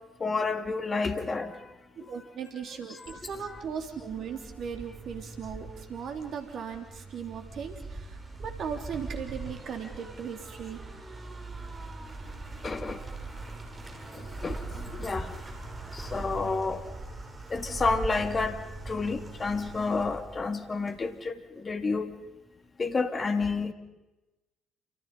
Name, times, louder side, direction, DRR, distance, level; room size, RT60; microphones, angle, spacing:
voice 1, 0.2-1.6 2.9-3.5 12.6-13.0 14.1-15.3 15.9-16.8 17.5-22.1 22.8-23.7, left 4 dB, 35° left, 8 dB, 2.8 m, -30 dB
voice 2, 2.0-10.8, right 7 dB, 55° right, 5 dB, 3.3 m, -38 dB
sound 1, 3.1-21.2, right 3 dB, 25° right, 5.0 m, -41 dB
28.5 x 26.5 x 5.5 m, 1.0 s
hypercardioid pair, 55°, 0 cm